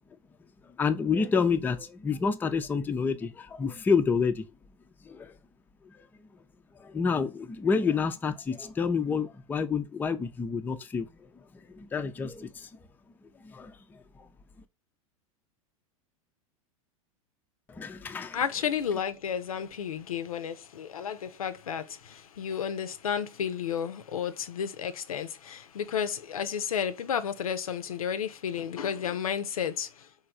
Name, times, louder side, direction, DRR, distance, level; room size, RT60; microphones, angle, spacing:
voice 1, 0.8-4.5 5.1-5.3 6.8-11.1 11.7-12.7 13.4-13.7 17.7-18.4, left 5 dB, 10° left, 0.3 m, -28 dB
voice 2, 18.3-30.1, left 8 dB, 85° left, 0.4 m, -32 dB
3.0 x 2.5 x 2.4 m
hypercardioid pair, 95°, 18 cm